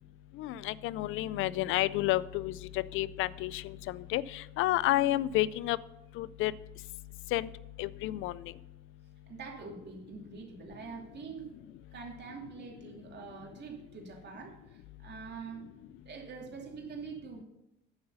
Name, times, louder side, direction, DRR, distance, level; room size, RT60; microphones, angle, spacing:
voice 1, 0.4-5.8 6.2-6.5 7.3-7.5 7.8-8.4, left 15 dB, 90° left, 19 dB, 0.4 m, -30 dB
voice 2, 9.3-11.5 11.9-15.6 16.0-17.4, right 5 dB, 60° right, 1 dB, 2.5 m, -45 dB
9.8 x 7.8 x 5.5 m, 0.90 s
cardioid pair, 90°, 20 cm